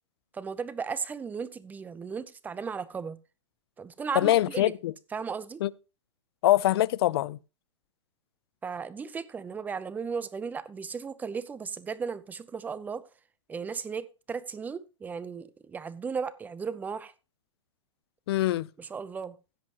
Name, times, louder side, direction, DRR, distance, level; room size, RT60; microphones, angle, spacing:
voice 1, 0.3-3.2 3.8-4.7 5.1-5.6 8.6-13.0 13.5-17.1 18.8-19.4, right 5 dB, 10° right, 0.7 m, -35 dB
voice 2, 4.1-4.9 5.6-5.7 6.4-7.4 18.3-18.7, left 14 dB, 55° left, 0.6 m, -23 dB
16.0 x 7.4 x 3.0 m
hypercardioid pair, 140°, 16 cm